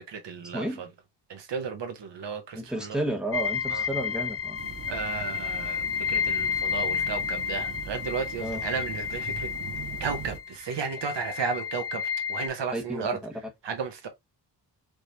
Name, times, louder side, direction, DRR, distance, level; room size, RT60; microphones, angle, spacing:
voice 1, 0.1-0.9 1.3-3.0 3.7-3.8 4.9-9.5 10.0-12.0 12.3-13.2 13.6-14.1, right 5 dB, 75° right, 1.1 m, -33 dB
voice 2, 2.5-4.6 8.4-8.6 12.7-13.3, right 1 dB, ahead, 1.3 m, -32 dB
sound 1, 3.3-12.5, left 7 dB, 35° left, 0.4 m, -31 dB
sound 2, 4.6-10.4, right 7 dB, 55° right, 0.7 m, -41 dB
5.0 x 3.1 x 2.7 m
cardioid pair, 75°, 42 cm